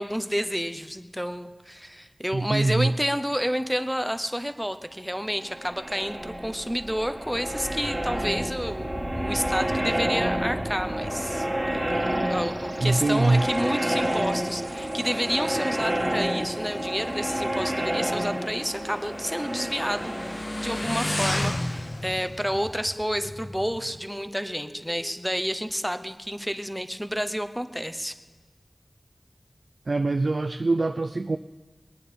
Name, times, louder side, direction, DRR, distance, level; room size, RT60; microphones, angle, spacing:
voice 1, 0.0-28.2, equal, ahead, 9 dB, 0.9 m, -30 dB
voice 2, 2.3-2.9 12.8-13.4 29.9-31.4, right 2 dB, 75° right, 7 dB, 0.4 m, -23 dB
sound 1, 5.4-22.0, right 1 dB, 15° right, 1.6 m, -29 dB
Motorcycle, 15.7-24.0, left 1 dB, 35° left, 0.7 m, -34 dB
Dog, 22.4-26.2, equal, 80° left, 6.3 m, -48 dB
22.0 x 9.3 x 5.1 m, 1.3 s
wide cardioid pair, 55°, 0 cm